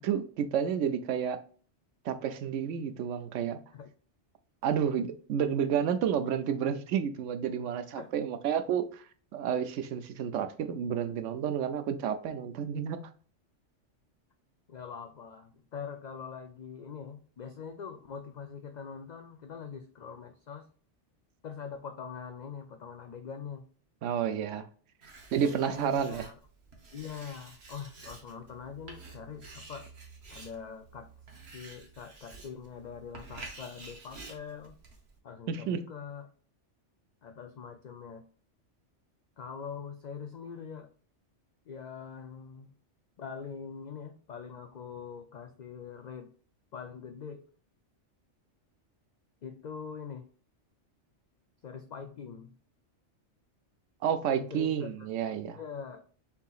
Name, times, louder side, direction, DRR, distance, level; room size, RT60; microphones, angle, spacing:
voice 1, 0.0-1.4 2.0-3.6 4.6-9.0 9.3-13.1 24.0-24.7 25.3-26.2 35.5-35.8 54.0-55.6, right 8 dB, 90° right, 1.0 m, -30 dB
voice 2, 7.9-8.3 14.7-20.7 21.4-23.6 25.4-26.4 26.9-29.9 30.3-31.1 31.5-34.8 35.2-36.3 37.2-38.3 39.4-40.9 41.7-42.7 43.2-46.3 46.7-47.5 49.4-50.3 51.6-52.5 54.3-55.1 55.5-56.0, left 6 dB, 55° left, 0.5 m, -43 dB
Writing, 25.0-35.2, right 3 dB, 60° right, 1.4 m, -50 dB
7.0 x 2.8 x 2.4 m
omnidirectional pair, 1.2 m